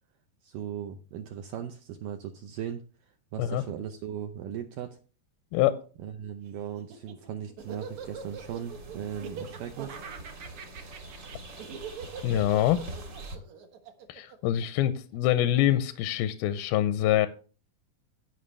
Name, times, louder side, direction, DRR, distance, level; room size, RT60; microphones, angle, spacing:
voice 1, 0.4-2.8 3.3-5.0 6.0-10.0, right 9 dB, 80° right, 6 dB, 2.0 m, -38 dB
voice 2, 5.5-5.8 12.2-12.8 14.1-17.3, left 12 dB, 80° left, 11 dB, 2.3 m, -25 dB
Laughter, 6.8-15.2, right 6 dB, 60° right, 2.0 m, -42 dB
sound 1, 7.6-13.4, right 2 dB, 40° right, 1.7 m, -45 dB
16.5 x 5.8 x 3.3 m, 0.37 s
omnidirectional pair, 4.6 m